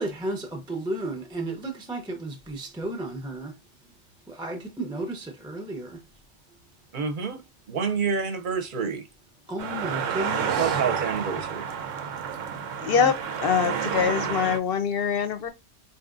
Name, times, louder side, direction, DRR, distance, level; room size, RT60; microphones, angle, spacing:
voice 1, 0.0-3.6 4.3-6.0 9.5-10.8 12.0-12.1 12.9-13.1, right 2 dB, 5° right, 0.5 m, -33 dB
voice 2, 6.9-7.4 7.7-9.0 10.6-11.6, right 5 dB, 50° right, 0.8 m, -28 dB
sound 1, 9.6-14.6, right 7 dB, 90° right, 1.0 m, -29 dB
voice 3, 12.8-13.1 13.4-15.5, left 7 dB, 60° left, 0.7 m, -24 dB
4.1 x 2.8 x 2.4 m
omnidirectional pair, 1.3 m